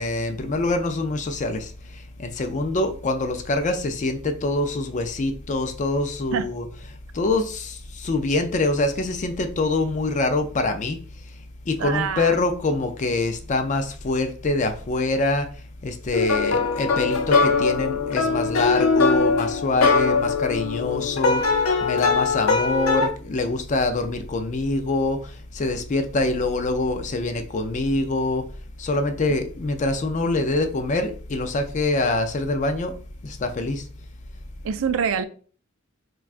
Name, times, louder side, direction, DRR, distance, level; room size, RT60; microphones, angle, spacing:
voice 1, 0.0-1.7 2.2-6.7 7.1-11.0 11.7-15.5 15.8-21.4 21.8-28.4 28.8-32.9 33.2-33.9, left 2 dB, 35° left, 0.4 m, -25 dB
voice 2, 11.8-12.3 34.6-35.2, right 7 dB, 70° right, 0.3 m, -25 dB
sound 1, 16.1-23.1, left 4 dB, 90° left, 0.5 m, -21 dB
4.4 x 2.3 x 2.4 m
head